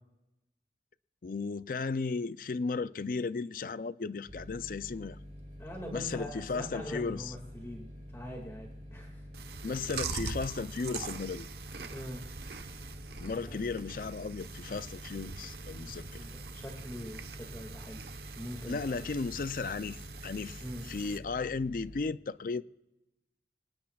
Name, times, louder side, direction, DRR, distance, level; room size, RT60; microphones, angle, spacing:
voice 1, 1.2-5.2 5.9-7.3 9.6-11.5 13.2-16.2 18.7-22.6, left 4 dB, 50° left, 0.4 m, -35 dB
sound 1, 4.3-22.0, equal, 45° right, 4.6 m, -48 dB
voice 2, 5.6-9.2 9.6-9.8 11.9-12.2 13.4-13.8 15.7-18.0 18.3-19.1 20.6-20.9, equal, 15° left, 2.0 m, -43 dB
Chewing mastication, 9.3-21.2, right 4 dB, 70° right, 1.0 m, -43 dB
25.5 x 19.0 x 2.4 m
head